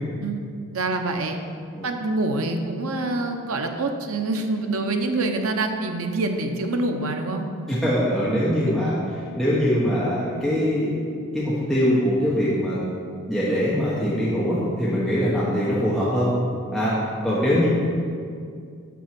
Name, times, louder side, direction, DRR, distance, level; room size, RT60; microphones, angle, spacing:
voice 1, 0.7-1.4 1.8-7.4, right 2 dB, 75° right, 4 dB, 0.7 m, -26 dB
voice 2, 7.7-9.0 9.3-11.1 11.3-12.8 13.3-16.3 16.7-17.0 17.2-17.7, equal, ahead, -9 dB, 1.0 m, -22 dB
6.0 x 6.0 x 5.9 m, 2.3 s
head